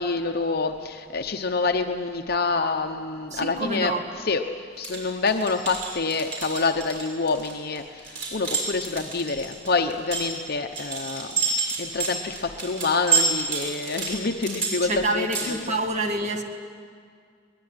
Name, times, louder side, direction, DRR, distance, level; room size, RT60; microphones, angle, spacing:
voice 1, 0.0-4.4 4.8-11.4 11.8-15.7, left 4 dB, 50° left, 4 dB, 0.9 m, -27 dB
voice 2, 3.3-4.0 14.8-16.4, right 2 dB, 40° right, 3 dB, 2.0 m, -27 dB
sound 1, 4.8-15.5, right 4 dB, 75° right, 7.0 m, -28 dB
22.0 x 20.0 x 9.7 m, 2.1 s
head